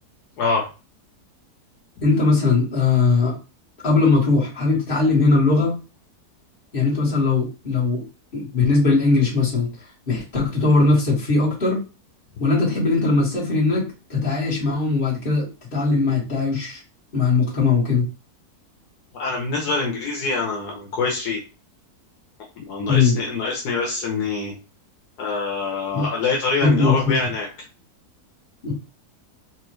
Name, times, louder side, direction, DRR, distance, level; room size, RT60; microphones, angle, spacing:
voice 1, 0.4-0.7 19.1-21.4 22.6-24.5 25.2-27.5, left 4 dB, 75° left, -1 dB, 1.4 m, -25 dB
voice 2, 2.0-3.4 3.8-5.8 6.7-8.0 8.3-9.7 10.1-11.8 12.4-13.8 14.1-16.8 17.1-18.1 22.9-23.1 25.9-26.0 26.6-27.2 28.6-28.7, left 3 dB, 35° left, -5 dB, 1.9 m, -19 dB
4.3 x 2.6 x 3.1 m, 0.32 s
omnidirectional pair, 1.7 m